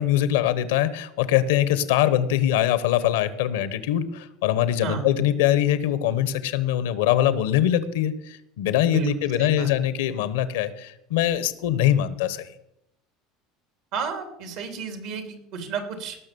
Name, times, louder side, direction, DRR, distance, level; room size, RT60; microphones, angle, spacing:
voice 1, 0.0-12.5, left 11 dB, 85° left, 14 dB, 1.1 m, -23 dB
voice 2, 8.8-9.7 13.9-16.2, right 5 dB, 75° right, 5 dB, 3.1 m, -32 dB
18.5 x 6.1 x 7.0 m, 0.82 s
supercardioid pair, 100°, 0 cm